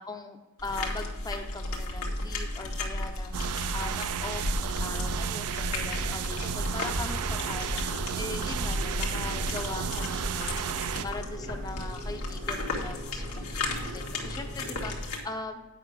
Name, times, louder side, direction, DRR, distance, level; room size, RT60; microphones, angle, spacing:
voice 1, 0.0-3.4 3.7-7.8 8.2-15.7, left 2 dB, 15° left, 5 dB, 0.5 m, -40 dB
sound 1, 0.6-15.2, left 2 dB, 85° left, 1.7 m, -34 dB
sound 2, 3.3-11.0, right 8 dB, 85° right, 0.4 m, -33 dB
sound 3, 4.2-15.0, right 1 dB, 30° right, 0.6 m, -44 dB
8.8 x 5.7 x 6.2 m, 1.2 s
head